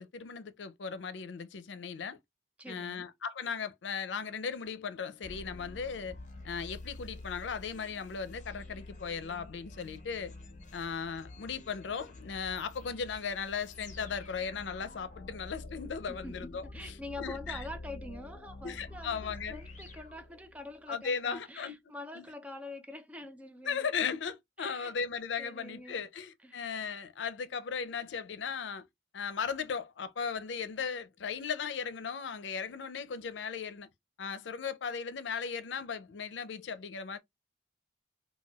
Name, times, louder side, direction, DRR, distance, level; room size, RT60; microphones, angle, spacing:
voice 1, 0.0-2.2 2.7-6.2 6.4-10.3 10.7-17.6 18.6-19.6 20.9-21.7 22.1-22.3 23.6-28.8 29.1-33.9 34.2-37.2, left 6 dB, 90° left, 0.5 m, -37 dB
voice 2, 2.6-3.1 16.1-23.9 24.6-24.9 25.4-26.0 26.4-26.6, left 1 dB, 10° right, 0.4 m, -45 dB
sound 1, 5.2-20.8, left 2 dB, 45° left, 0.8 m, -48 dB
4.1 x 2.2 x 2.3 m
head